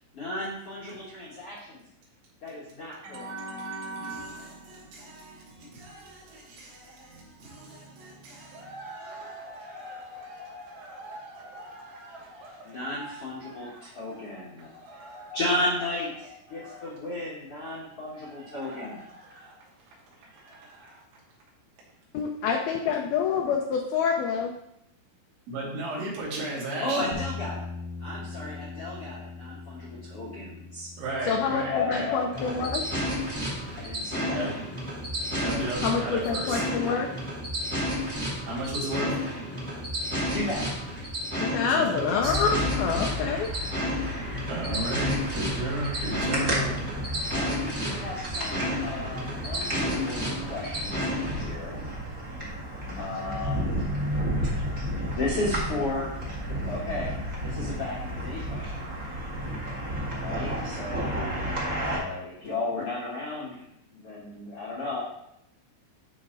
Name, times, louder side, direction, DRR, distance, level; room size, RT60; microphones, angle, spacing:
voice 1, 0.1-1.8 2.4-3.3 12.6-15.1 15.3-19.1 26.8-27.6 28.0-30.9 31.7-32.9 33.8-34.5 40.3-40.7 43.9-44.3 47.3-51.8 52.9-53.8 54.7-54.8 55.1-56.1 56.4-57.1 57.4-58.9 60.2-61.4 61.8-63.6 63.9-65.0, left 2 dB, 70° left, -5 dB, 1.4 m, -34 dB
voice 2, 3.0-15.8 16.2-17.0 17.9-19.9 20.2-21.0 25.5-27.1 31.0-32.1 34.3-34.5 35.4-36.6 38.4-39.2 41.7-42.3 44.5-46.8, right 1 dB, 85° right, -5 dB, 4.9 m, -36 dB
voice 3, 22.1-24.5 31.3-32.8 35.8-37.1 41.4-43.5, left 6 dB, 90° left, 2 dB, 2.1 m, -27 dB
sound 1, 27.1-35.2, left 4 dB, 65° right, 0.3 m, -42 dB
sound 2, 32.3-51.5, equal, 20° right, 1.0 m, -32 dB
sound 3, 42.2-62.0, equal, 45° right, 1.0 m, -32 dB
12.0 x 4.7 x 3.9 m, 0.79 s
omnidirectional pair, 5.3 m